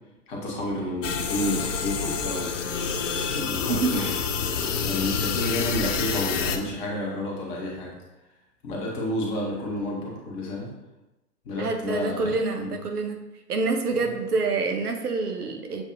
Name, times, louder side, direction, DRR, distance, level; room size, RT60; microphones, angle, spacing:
voice 1, 0.3-2.6 3.2-4.1 4.4-8.0 8.6-10.7 11.4-12.8 14.0-14.2, left 1 dB, 30° left, -3 dB, 1.2 m, -30 dB
sound 1, 1.0-6.6, left 6 dB, 50° left, 0.5 m, -28 dB
voice 2, 11.6-13.2 13.5-15.8, right 3 dB, 65° right, 4 dB, 0.8 m, -26 dB
7.2 x 2.6 x 2.5 m, 1.0 s
figure-of-eight pair, 115°, 49 cm